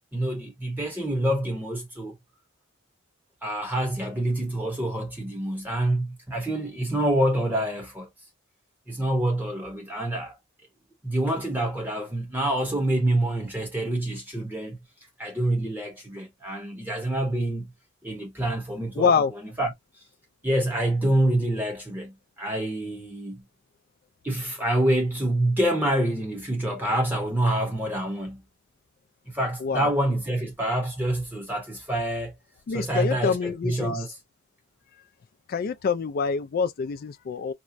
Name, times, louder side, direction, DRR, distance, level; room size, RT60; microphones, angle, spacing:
voice 1, 0.1-2.2 3.4-8.1 8.9-10.3 11.0-14.8 15.2-17.7 18.0-19.2 19.6-19.7 20.4-23.4 24.2-28.4 29.3-32.4 32.7-34.1, right 1 dB, 10° right, 0.8 m, -26 dB
voice 2, 19.0-19.3 29.6-29.9 32.7-34.0 35.5-37.5, left 5 dB, 45° left, 0.3 m, -26 dB
4.3 x 2.0 x 2.5 m
head